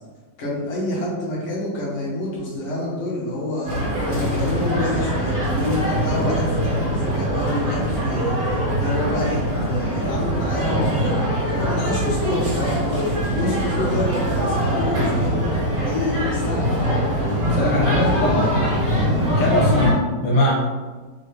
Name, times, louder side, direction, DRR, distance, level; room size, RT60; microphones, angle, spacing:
voice 1, 0.4-3.8 4.0-15.4 15.8-17.1 17.5-18.6 19.0-19.3, left 1 dB, 45° left, -6 dB, 1.1 m, -28 dB
sound 1, 3.7-19.9, right 1 dB, 45° right, 2.0 m, -22 dB
voice 2, 17.4-18.5 19.4-20.5, left 1 dB, 70° left, -4 dB, 1.5 m, -21 dB
3.7 x 2.7 x 3.3 m, 1.4 s
omnidirectional pair, 2.0 m